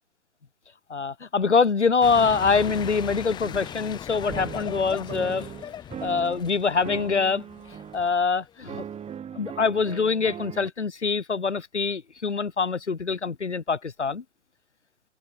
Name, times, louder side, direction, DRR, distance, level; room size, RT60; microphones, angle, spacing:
voice 1, 0.9-5.5 6.0-7.4 7.9-8.8 9.3-14.2, left 5 dB, 85° left, 2.1 m, -24 dB
sound 1, 2.0-8.8, left 10 dB, 15° left, 0.6 m, -39 dB
sound 2, 2.2-3.9 4.3-6.5 6.8-8.1 8.7-10.7, right 8 dB, 20° right, 4.2 m, -39 dB
figure-of-eight pair, 110°, 34 cm